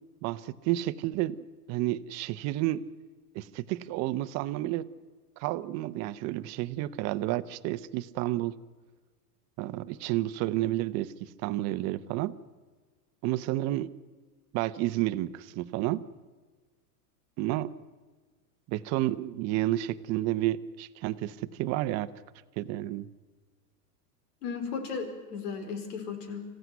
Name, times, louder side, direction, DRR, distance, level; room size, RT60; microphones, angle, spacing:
voice 1, 0.2-2.8 3.3-4.9 5.4-8.5 9.6-12.3 13.2-13.9 14.5-16.0 17.4-17.7 18.7-22.1 22.6-23.1, right 15 dB, 35° right, 14 dB, 0.8 m, -31 dB
voice 2, 24.4-26.5, left 5 dB, 75° left, 6 dB, 5.1 m, -35 dB
25.0 x 15.5 x 9.4 m, 1.4 s
supercardioid pair, 145°, 46 cm